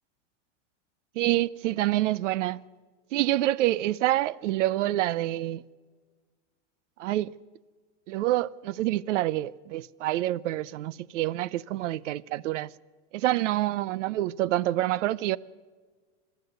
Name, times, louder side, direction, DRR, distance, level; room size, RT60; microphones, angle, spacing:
voice 1, 1.2-2.6 3.1-5.6 7.0-7.3 8.1-12.7 13.1-15.4, right 15 dB, 80° right, 0.7 m, -27 dB
29.5 x 13.0 x 8.0 m
supercardioid pair, 170°, 36 cm